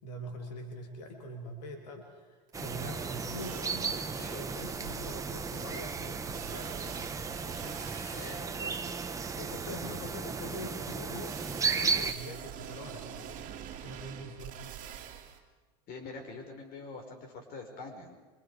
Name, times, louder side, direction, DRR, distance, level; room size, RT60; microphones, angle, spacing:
voice 1, 0.0-7.1 7.4-7.8 8.1-9.1 9.3-13.5 13.8-14.7, left 1 dB, 90° left, 2 dB, 3.5 m, -44 dB
sound 1, 2.5-12.1, right 5 dB, 15° right, 1.3 m, -35 dB
sound 2, 2.5-2.6 2.8-4.0 4.4-8.4 11.2-15.4, right 10 dB, 40° right, 2.7 m, -47 dB
sound 3, 4.1-9.6, right 2 dB, 15° left, 7.2 m, -50 dB
voice 2, 15.9-18.1, left 3 dB, 45° left, 3 dB, 5.5 m, -44 dB
26.0 x 26.0 x 5.0 m, 1.3 s
supercardioid pair, 130°, 21 cm